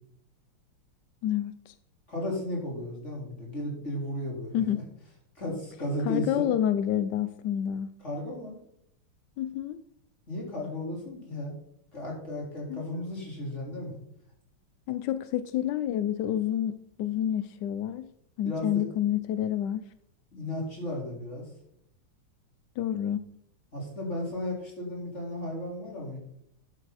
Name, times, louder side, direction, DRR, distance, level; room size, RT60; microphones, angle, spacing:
voice 1, 1.2-1.7 4.5-4.8 6.1-7.9 9.4-9.8 12.7-13.0 14.9-18.1 18.4-19.9 22.8-23.2, left 10 dB, 75° left, 13 dB, 1.0 m, -29 dB
voice 2, 2.1-4.8 5.4-6.5 8.0-8.6 10.3-11.6 11.9-14.0 18.4-18.8 20.3-21.5 23.7-26.2, left 1 dB, 30° left, -3 dB, 4.4 m, -34 dB
11.5 x 9.9 x 4.1 m, 0.71 s
omnidirectional pair, 2.4 m